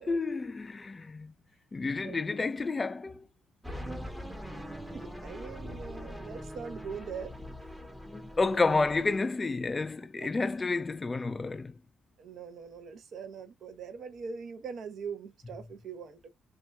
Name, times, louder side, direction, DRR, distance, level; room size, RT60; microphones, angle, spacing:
voice 1, 0.1-1.3 1.7-3.3 8.0-11.8, left 3 dB, 25° left, 0.3 m, -30 dB
sound 1, 3.6-9.2, equal, 5° right, 0.7 m, -42 dB
voice 2, 4.9-7.3 10.2-10.3 12.2-16.3, right 6 dB, 65° right, 0.7 m, -42 dB
2.7 x 2.3 x 3.3 m
cardioid pair, 90°, 0 cm